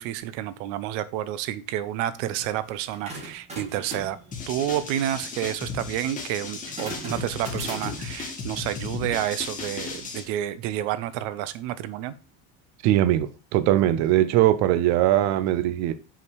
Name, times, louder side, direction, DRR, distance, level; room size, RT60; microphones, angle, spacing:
voice 1, 0.0-4.2 4.5-12.1, right 12 dB, 85° right, 0.8 m, -30 dB
sound 1, 2.7-8.2, right 1 dB, 20° right, 2.2 m, -40 dB
sound 2, 4.3-10.2, left 5 dB, 20° left, 1.5 m, -35 dB
voice 2, 12.8-15.9, right 13 dB, 50° right, 0.5 m, -21 dB
5.6 x 5.0 x 4.7 m
cardioid pair, 170°, 36 cm